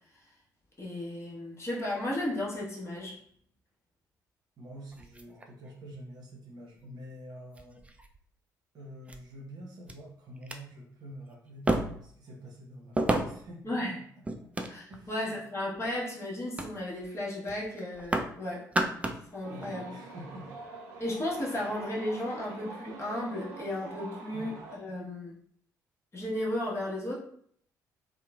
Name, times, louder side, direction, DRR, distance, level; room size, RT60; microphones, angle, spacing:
voice 1, 0.8-3.2 13.6-14.0 14.7-18.7 19.3-19.9 21.0-25.4 26.1-27.3, left 1 dB, 30° left, -5 dB, 1.0 m, -34 dB
voice 2, 4.6-7.8 8.7-14.0 14.4-14.5 14.9-15.4 15.8-15.9 19.4-20.5 21.5-21.6 24.3-24.7, equal, 45° right, -2 dB, 0.9 m, -47 dB
sound 1, 4.9-6.0 6.8-6.9 7.6-8.2 9.1-9.2 9.9-10.0 10.4-10.6 11.7-12.2 12.9-13.5 14.2-15.1 15.6-16.0 16.6-16.7 17.0-17.2 17.5-18.4 18.6-19.3 19.6-19.7, right 2 dB, 15° right, 0.3 m, -32 dB
sound 2, 19.4-24.8, right 3 dB, 70° right, 0.5 m, -45 dB
2.9 x 2.1 x 2.3 m, 0.64 s
figure-of-eight pair, 45°, 10 cm